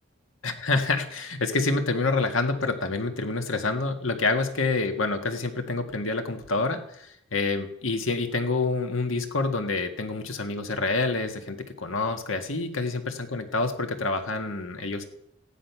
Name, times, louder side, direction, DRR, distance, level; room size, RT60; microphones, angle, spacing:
voice 1, 0.4-15.0, left 3 dB, 85° left, 5 dB, 1.8 m, -27 dB
15.0 x 10.5 x 5.8 m, 0.73 s
head